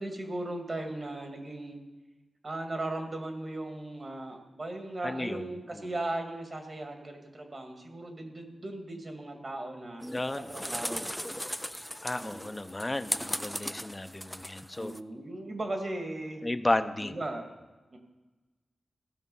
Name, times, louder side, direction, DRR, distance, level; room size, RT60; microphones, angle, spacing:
voice 1, 0.0-1.8 2.4-10.0 10.5-11.2 12.2-12.6 13.0-13.3 14.8-16.4 17.0-17.5 17.9-18.0, right 2 dB, 45° right, 4 dB, 2.0 m, -37 dB
voice 2, 5.0-5.5 5.7-5.9 10.1-10.5 12.0-14.9 16.4-17.2, left 2 dB, 25° left, 10 dB, 0.8 m, -33 dB
sound 1, 10.0-15.0, equal, ahead, 0.4 m, -37 dB
16.0 x 6.0 x 5.5 m, 1.3 s
cardioid pair, 60°, 0 cm